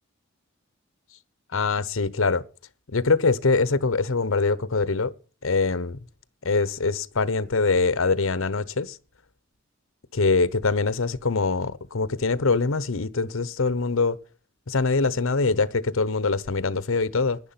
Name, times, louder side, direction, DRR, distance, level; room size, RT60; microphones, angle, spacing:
voice 1, 1.5-2.4 2.9-5.1 5.4-6.0 6.4-9.0 10.1-14.2 14.7-17.4, left 4 dB, 80° left, 0.9 m, -23 dB
10.5 x 10.5 x 5.8 m
head